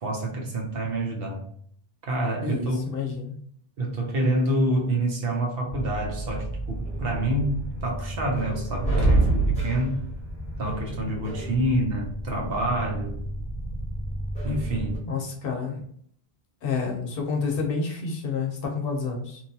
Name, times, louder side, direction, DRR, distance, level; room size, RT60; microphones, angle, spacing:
voice 1, 0.0-1.4 2.1-2.8 3.8-10.0 10.6-13.2 14.4-15.0, right 1 dB, 70° right, 0 dB, 0.9 m, -27 dB
voice 2, 2.4-3.3 15.1-15.8 16.6-19.4, left 5 dB, 65° left, 2 dB, 0.8 m, -29 dB
sound 1, 5.7-15.0, right 2 dB, 5° left, 0.8 m, -29 dB
2.9 x 2.3 x 2.7 m, 0.62 s
omnidirectional pair, 1.1 m